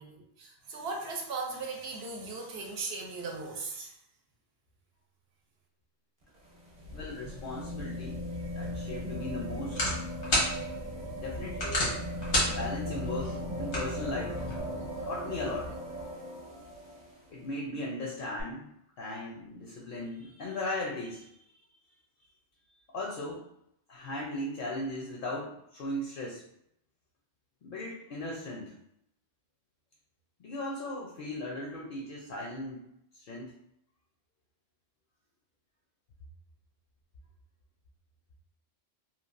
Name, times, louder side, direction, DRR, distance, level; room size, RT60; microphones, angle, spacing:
voice 1, 0.0-4.0, right 3 dB, 70° right, 1 dB, 0.8 m, -38 dB
sound 1, 6.2-17.2 18.4-18.5, equal, 45° right, 0.8 m, -38 dB
voice 2, 6.9-9.9 11.2-12.0 12.4-14.4 15.0-15.7 17.3-18.7 19.0-21.5 22.9-23.5 23.9-26.4 27.6-28.7 30.4-32.8 33.1-33.5, left 1 dB, 60° left, -1 dB, 0.7 m, -37 dB
sound 2, 8.5-14.6, left 1 dB, 90° left, 1.3 m, -34 dB
3.0 x 2.3 x 2.5 m, 0.76 s
omnidirectional pair, 1.1 m